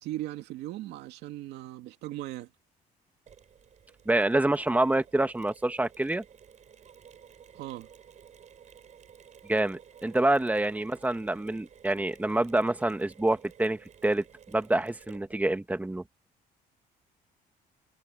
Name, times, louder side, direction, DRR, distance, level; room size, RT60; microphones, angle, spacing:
voice 1, 0.0-2.5 7.5-7.9, right 15 dB, 85° right, 2.5 m, -38 dB
Mechanisms, 3.3-15.6, right 8 dB, 45° right, 5.6 m, -54 dB
voice 2, 4.0-6.2 9.5-14.2 14.5-16.0, right 2 dB, 10° right, 1.5 m, -27 dB
cardioid pair, 110°, 17 cm